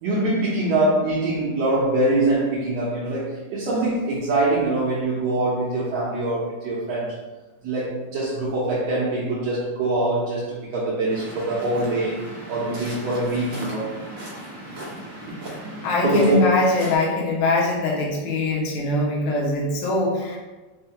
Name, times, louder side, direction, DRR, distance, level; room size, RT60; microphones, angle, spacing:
voice 1, 0.0-7.1 7.6-12.2 12.5-13.9 16.0-16.4, right 2 dB, 75° right, -8 dB, 1.7 m, -23 dB
Waves surf, 11.1-17.0, right 1 dB, 90° right, 1.0 m, -37 dB
voice 2, 15.8-20.4, left 2 dB, 80° left, -3 dB, 2.0 m, -22 dB
5.5 x 2.1 x 2.7 m, 1.2 s
omnidirectional pair, 3.4 m